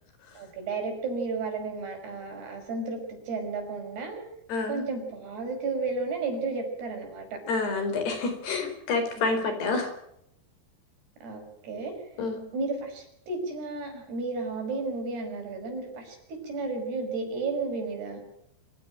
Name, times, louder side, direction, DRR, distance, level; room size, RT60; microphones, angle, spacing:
voice 1, 0.4-4.2 4.7-7.4 9.2-9.3 9.6-9.7 11.2-11.9 12.5-18.2, right 3 dB, 75° right, 3 dB, 7.7 m, -33 dB
voice 2, 4.5-4.8 7.5-9.9 12.2-12.4, left 3 dB, 80° left, 7 dB, 6.5 m, -28 dB
26.0 x 16.0 x 9.0 m, 0.77 s
omnidirectional pair, 4.7 m